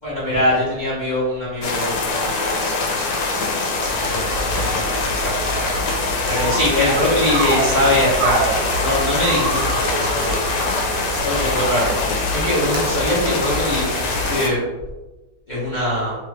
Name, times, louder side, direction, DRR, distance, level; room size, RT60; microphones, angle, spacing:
voice 1, 0.0-3.3 3.8-5.7 6.3-10.3 11.1-13.9 14.3-14.6 15.5-16.2, left 1 dB, 35° left, -9 dB, 0.7 m, -23 dB
sound 1, 1.6-14.5, left 3 dB, 75° left, 1.2 m, -23 dB
sound 2, 3.9-14.4, equal, 60° right, 0.9 m, -31 dB
sound 3, 6.3-7.0 7.3-8.7 9.2-11.0 11.6-11.9 12.6-12.8, right 3 dB, 85° right, 1.2 m, -27 dB
3.0 x 2.4 x 3.2 m, 1.1 s
omnidirectional pair, 1.9 m